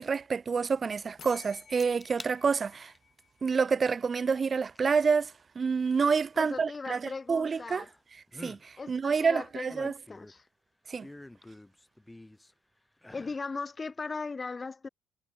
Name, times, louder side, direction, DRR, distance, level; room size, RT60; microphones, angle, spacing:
voice 1, 0.0-2.9 3.4-7.8 8.4-9.9 10.9-11.1, right 5 dB, 35° right, 0.4 m, -28 dB
sound 1, 1.2-3.9, left 7 dB, 45° left, 3.6 m, -53 dB
sound 2, 1.8-2.4 2.8-3.2 4.8-4.9 7.5-8.0 8.3-8.6 9.4-10.5 11.0-12.5 13.0-13.5 13.9-14.0, left 1 dB, 10° left, 1.5 m, -48 dB
voice 2, 6.4-7.9 8.8-10.4 13.1-14.9, left 4 dB, 25° left, 0.9 m, -38 dB
hypercardioid pair, 65°, 0 cm